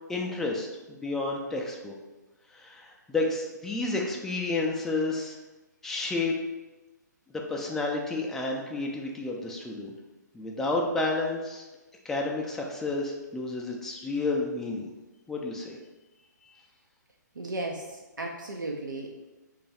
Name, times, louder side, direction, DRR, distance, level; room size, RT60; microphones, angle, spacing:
voice 1, 0.1-1.9 2.5-5.3 5.8-6.4 7.5-9.9 10.3-11.6 12.0-14.8 15.3-15.8, left 2 dB, 5° left, -1 dB, 0.3 m, -30 dB
voice 2, 17.4-19.1, right 2 dB, 85° right, 0 dB, 0.4 m, -35 dB
3.0 x 2.4 x 4.0 m, 1.1 s
figure-of-eight pair, 125°, 10 cm